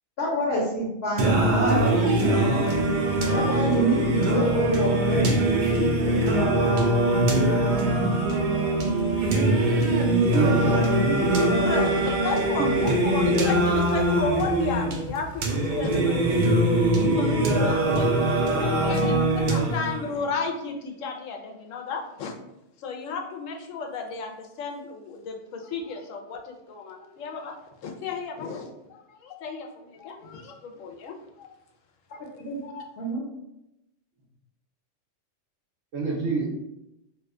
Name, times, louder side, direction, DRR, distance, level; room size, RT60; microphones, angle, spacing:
voice 1, 0.2-2.4 3.3-5.3 5.8-6.5 32.4-32.6 33.0-33.3, equal, 60° left, -5 dB, 1.0 m, -28 dB
Singing, 1.2-20.2, right 1 dB, 60° right, 0.5 m, -22 dB
voice 2, 10.3-11.8 12.3-12.7 35.9-36.7, right 3 dB, 80° right, -4 dB, 1.1 m, -28 dB
voice 3, 11.6-16.6 17.1-22.3 22.8-27.5 27.8-28.7 29.2-29.7 30.0-30.5 30.8-31.1 31.4-31.5 32.6-32.8, left 5 dB, 85° left, 2 dB, 1.0 m, -33 dB
2.8 x 2.2 x 3.5 m, 0.87 s
omnidirectional pair, 1.3 m